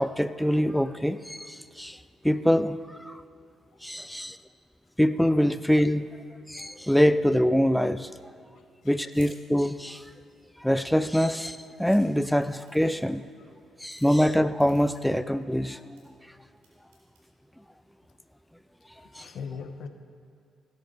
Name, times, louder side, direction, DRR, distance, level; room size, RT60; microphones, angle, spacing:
voice 1, 0.0-2.0 2.2-3.2 3.8-4.4 5.0-6.1 6.5-8.1 8.9-10.0 10.6-13.3 13.8-16.0 19.1-19.3, equal, 5° left, 13 dB, 0.4 m, -24 dB
voice 2, 4.0-4.3 8.5-9.0 19.0-19.9, left 5 dB, 65° left, 8 dB, 1.0 m, -41 dB
sound 1, 9.1-9.3 9.7-10.6 11.2-11.3 11.5-12.0 12.4-13.1 13.8-14.2 14.6-15.4 15.8-16.0 16.6-17.2, right 4 dB, 85° right, 3.3 m, -56 dB
16.5 x 9.4 x 5.2 m, 2.4 s
hypercardioid pair, 55°, 0 cm